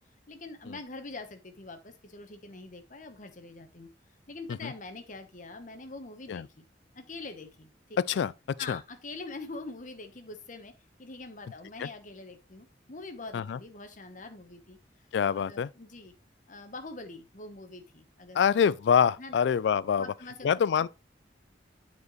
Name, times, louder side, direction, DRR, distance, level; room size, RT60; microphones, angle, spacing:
voice 1, 0.3-3.9 4.3-6.6 6.9-8.0 8.6-10.7 11.0-14.8 15.3-16.1 16.5-18.4 19.2-19.4 19.9-20.5, left 3 dB, 45° left, 1.1 m, -44 dB
voice 2, 8.0-8.3 8.7-8.8 11.8-11.9 13.3-13.6 15.1-15.7 18.3-20.1 20.4-20.9, left 7 dB, 75° left, 0.3 m, -25 dB
9.4 x 4.5 x 3.1 m
head